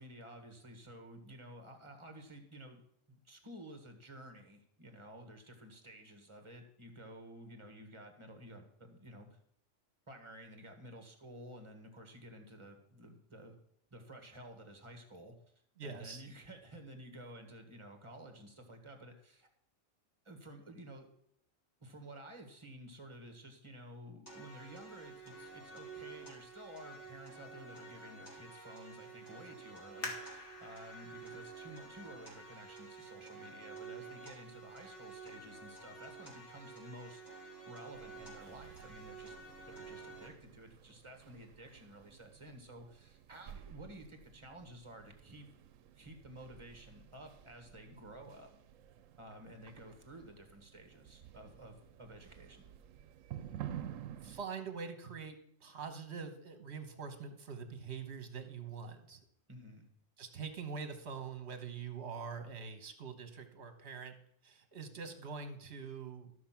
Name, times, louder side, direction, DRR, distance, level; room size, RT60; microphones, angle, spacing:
voice 1, 0.0-2.8 3.1-9.4 10.1-13.6 13.9-15.4 15.8-19.5 20.3-21.1 21.8-37.2 37.7-39.4 39.7-45.5 45.9-48.5 49.2-52.7 59.5-59.9, right 1 dB, 25° right, 5 dB, 1.6 m, -52 dB
voice 2, 15.8-16.2 54.2-59.2 60.2-64.1 64.4-66.3, right 5 dB, 60° right, 7 dB, 1.5 m, -44 dB
sound 1, 24.3-40.3, right 4 dB, 60° left, 4.4 m, -51 dB
sound 2, 30.0-33.4 34.0-34.1 34.7-35.1 35.5-35.6, left 3 dB, 85° left, 2.4 m, -48 dB
sound 3, 37.9-54.4, right 10 dB, 80° right, 1.0 m, -52 dB
13.0 x 6.2 x 5.9 m, 0.69 s
omnidirectional pair, 1.3 m